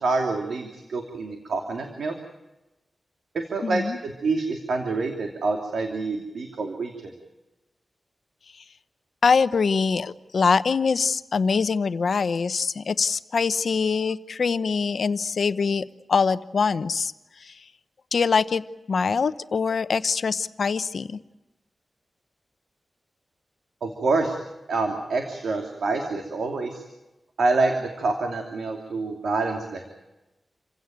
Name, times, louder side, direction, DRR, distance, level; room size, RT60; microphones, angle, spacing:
voice 1, 0.0-2.1 3.3-7.1 23.8-24.4 24.7-26.8 27.4-29.8, right 3 dB, 85° right, 3 dB, 2.8 m, -27 dB
voice 2, 3.6-4.0 9.2-17.1 17.4-17.6 18.1-21.2, left 5 dB, 65° left, 13 dB, 0.9 m, -24 dB
28.5 x 16.5 x 9.2 m, 1.0 s
wide cardioid pair, 95°, 0 cm